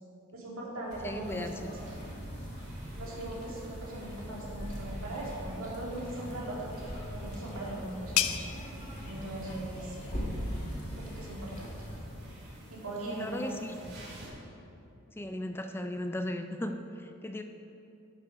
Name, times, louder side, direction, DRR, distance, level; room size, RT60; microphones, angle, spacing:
voice 1, 0.3-1.7 3.0-6.8 7.1-8.3 9.0-10.0 11.0-11.9 12.7-13.8, right 1 dB, 75° right, -4 dB, 2.2 m, -40 dB
sound 1, 0.9-12.0, equal, 35° left, 1.8 m, -41 dB
voice 2, 1.0-1.7 9.4-9.6 13.1-13.7 15.2-17.4, left 1 dB, 10° left, 6 dB, 0.3 m, -37 dB
sound 2, 1.2-14.3, right 1 dB, 55° right, 2.4 m, -51 dB
sound 3, 6.8-12.2, left 11 dB, 80° left, 0.5 m, -38 dB
9.4 x 6.7 x 5.2 m, 2.8 s
head